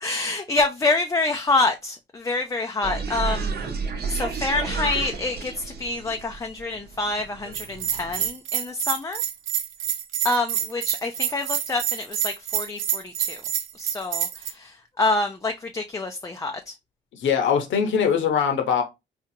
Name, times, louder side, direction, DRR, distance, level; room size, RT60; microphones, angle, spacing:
voice 1, 0.0-3.5 4.1-9.2 10.2-13.4 13.8-16.7, left 3 dB, 15° left, 0.4 m, -27 dB
sound 1, 2.8-8.3, right 5 dB, 55° right, 0.9 m, -32 dB
Bell, 7.5-14.5, right 10 dB, 80° right, 0.6 m, -27 dB
voice 2, 17.1-18.8, left 7 dB, 75° left, 1.0 m, -22 dB
4.4 x 2.4 x 2.7 m
cardioid pair, 90°, 20 cm